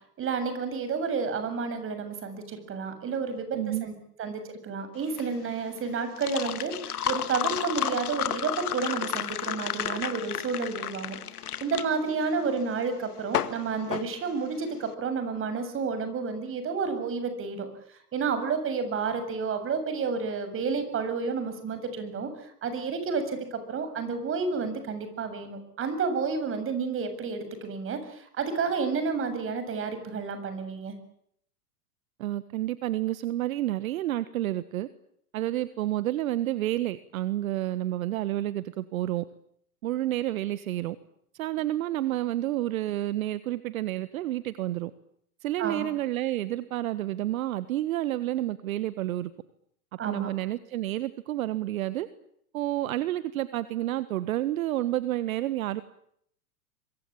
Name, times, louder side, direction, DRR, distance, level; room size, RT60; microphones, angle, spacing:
voice 1, 0.2-3.9 4.2-11.2 11.6-17.7 18.1-30.9 45.6-45.9 50.0-50.3, right 5 dB, 30° right, 9 dB, 7.4 m, -30 dB
voice 2, 3.5-3.9 32.2-34.9 35.3-39.2 39.8-41.0 41.3-44.9 45.4-49.3 50.0-52.1 52.5-55.8, right 14 dB, 65° right, 14 dB, 1.5 m, -30 dB
sound 1, 5.0-14.8, left 10 dB, 75° left, 2.1 m, -32 dB
26.0 x 23.5 x 8.8 m, 0.69 s
hypercardioid pair, 110°, 45 cm